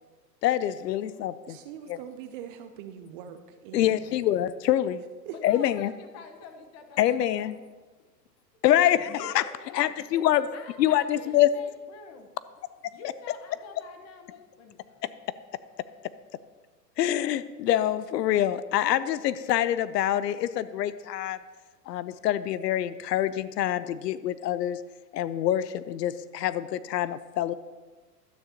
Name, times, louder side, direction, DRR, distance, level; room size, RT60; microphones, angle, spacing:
voice 1, 0.4-1.6 1.9-2.0 3.7-5.0 5.4-5.9 7.0-7.5 8.6-9.4 9.7-10.5 10.8-11.5 15.0-15.1 17.0-21.4 21.9-24.8 25.1-27.5, left 12 dB, 75° left, 16 dB, 0.6 m, -25 dB
voice 2, 1.5-4.3 5.3-5.4, right 10 dB, 35° right, 9 dB, 0.5 m, -43 dB
voice 3, 5.3-7.6 9.1-10.2 10.5-12.3 12.9-15.0, left 5 dB, 30° left, 6 dB, 1.2 m, -47 dB
12.5 x 9.5 x 2.9 m, 1.3 s
hypercardioid pair, 120°, 50 cm